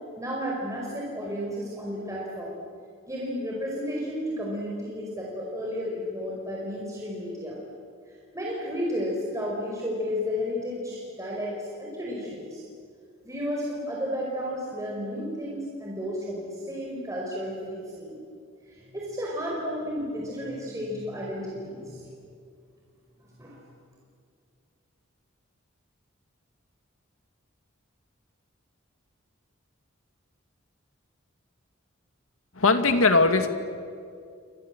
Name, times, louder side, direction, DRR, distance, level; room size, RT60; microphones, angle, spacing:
voice 1, 0.2-2.6 3.1-7.6 8.3-12.6 13.2-18.2 18.7-22.0 23.4-23.6, equal, 15° right, -4 dB, 5.0 m, -32 dB
voice 2, 32.6-33.5, left 3 dB, 80° left, 8 dB, 2.2 m, -20 dB
29.0 x 25.5 x 7.7 m, 2.3 s
head